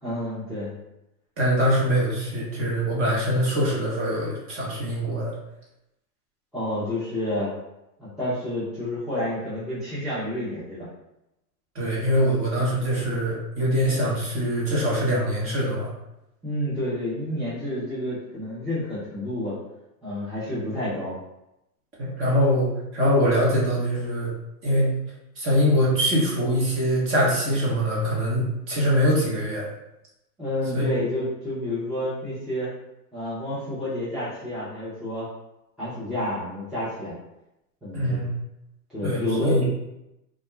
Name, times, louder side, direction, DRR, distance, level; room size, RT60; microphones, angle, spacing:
voice 1, 0.0-0.7 6.5-7.5 8.0-10.9 16.4-19.5 20.0-21.1 30.4-32.7 33.1-35.3 35.8-37.2 37.8-38.2 38.9-39.6, left 1 dB, ahead, -13 dB, 0.5 m, -29 dB
voice 2, 1.4-5.3 11.7-15.9 22.0-24.3 24.6-24.9 25.4-29.7 30.7-30.9 37.9-38.3 39.0-39.6, equal, 25° right, -5 dB, 0.9 m, -23 dB
2.4 x 2.1 x 3.0 m, 0.88 s
hypercardioid pair, 120°, 50 cm